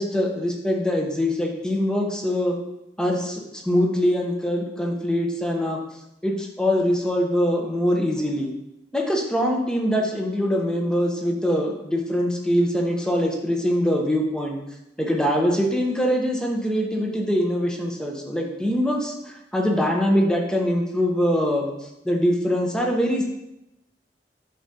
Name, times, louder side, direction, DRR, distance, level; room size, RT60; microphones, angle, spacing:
voice 1, 0.0-2.6 3.0-5.8 6.2-8.5 8.9-14.6 15.0-21.7 22.0-23.2, equal, 5° left, 0 dB, 0.9 m, -23 dB
9.5 x 5.0 x 2.9 m, 0.88 s
head